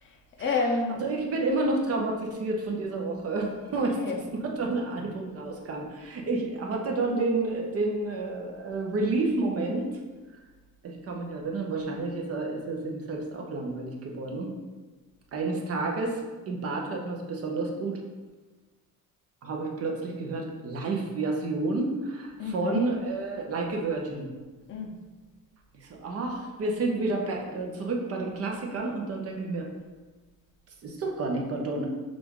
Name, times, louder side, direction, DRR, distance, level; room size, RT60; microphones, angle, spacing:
voice 1, 0.0-1.0 4.0-4.2 22.4-22.9 24.7-25.0, left 3 dB, 35° left, 1 dB, 0.6 m, -30 dB
voice 2, 1.0-4.0 4.3-9.9 10.8-14.5 15.3-16.2 16.5-18.0 19.4-24.3 25.7-29.7 30.8-31.9, right 2 dB, 45° right, 0 dB, 0.7 m, -30 dB
5.8 x 2.5 x 3.6 m, 1.3 s
cardioid pair, 170°, 34 cm